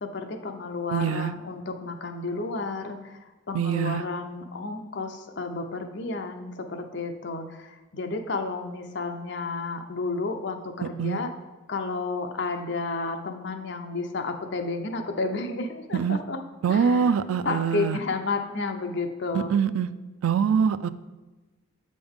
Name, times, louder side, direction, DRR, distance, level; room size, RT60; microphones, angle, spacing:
voice 1, 0.0-3.2 3.5-11.3 11.7-16.4 16.7-17.1 17.4-19.5, left 3 dB, 55° left, 5 dB, 0.6 m, -31 dB
voice 2, 0.9-1.3 3.5-4.0 10.8-11.2 15.9-16.2 16.6-18.0 19.3-19.9 20.2-20.9, right 7 dB, 85° right, 14 dB, 0.3 m, -24 dB
7.8 x 5.2 x 3.6 m, 1.2 s
head